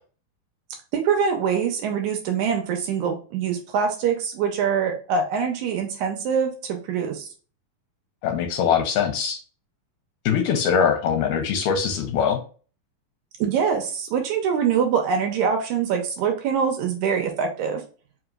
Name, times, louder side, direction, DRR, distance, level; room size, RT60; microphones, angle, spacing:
voice 1, 0.9-7.3 13.4-17.8, right 6 dB, 80° right, 3 dB, 1.8 m, -24 dB
voice 2, 8.2-9.4 10.3-12.4, left 7 dB, 80° left, 6 dB, 1.8 m, -22 dB
5.1 x 2.9 x 2.3 m, 0.38 s
omnidirectional pair, 4.0 m